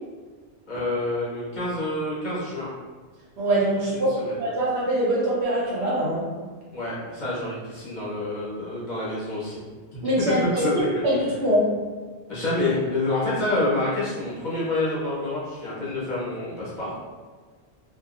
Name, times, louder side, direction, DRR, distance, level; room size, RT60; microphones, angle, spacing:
voice 1, 0.7-2.7 3.8-4.4 6.7-9.6 9.9-10.0 10.4-11.0 12.3-16.9, left 2 dB, 45° left, -9 dB, 1.1 m, -28 dB
voice 2, 3.4-6.3 10.0-11.8, right 1 dB, 75° right, -6 dB, 1.2 m, -23 dB
2.8 x 2.6 x 2.5 m, 1.5 s
omnidirectional pair, 1.1 m